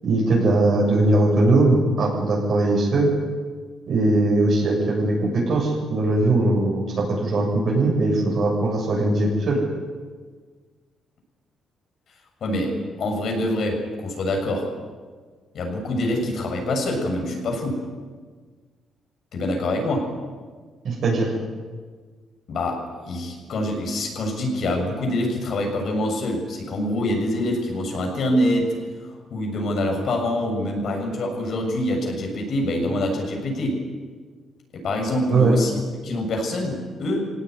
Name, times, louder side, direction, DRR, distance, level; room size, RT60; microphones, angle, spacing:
voice 1, 0.0-3.1 3.9-9.6 20.8-21.3 35.3-35.5, right 2 dB, 55° right, -3 dB, 7.2 m, -20 dB
voice 2, 12.4-14.7 15.5-17.8 19.3-20.1 22.5-28.7 29.3-33.8 34.7-37.3, left 1 dB, 60° left, 2 dB, 7.2 m, -25 dB
24.0 x 18.0 x 9.8 m, 1.5 s
cardioid pair, 125°, 0 cm